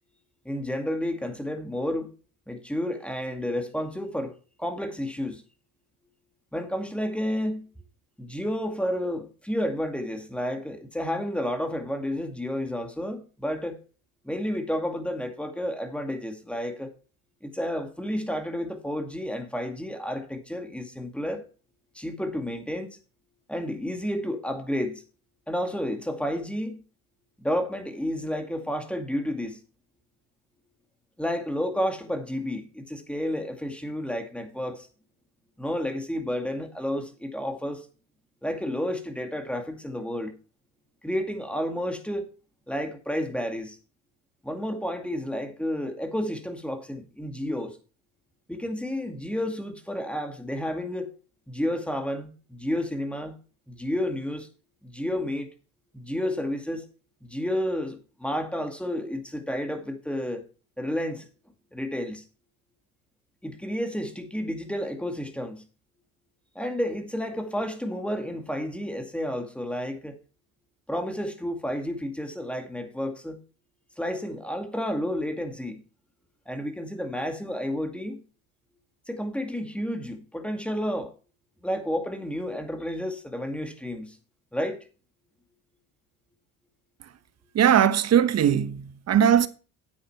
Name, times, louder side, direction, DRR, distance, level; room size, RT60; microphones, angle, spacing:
voice 1, 0.5-2.1 2.5-5.4 6.5-7.7 8.2-13.8 14.2-16.9 17.4-21.4 21.9-22.9 23.5-25.0 25.5-26.8 27.4-29.6 31.2-34.9 35.6-37.9 38.4-40.4 41.0-42.3 42.7-43.8 44.4-47.8 48.5-51.1 51.5-53.4 53.7-54.5 54.8-55.5 55.9-56.9 57.2-60.5 60.8-61.3 61.7-62.2 63.4-65.6 66.6-70.2 70.9-73.4 74.0-75.8 76.5-78.2 79.1-81.1 81.6-84.2 84.5-84.8, equal, 5° left, 2.2 m, -31 dB
voice 2, 87.5-89.5, right 9 dB, 40° right, 1.1 m, -20 dB
9.9 x 8.2 x 4.6 m
hypercardioid pair, 70°, 41 cm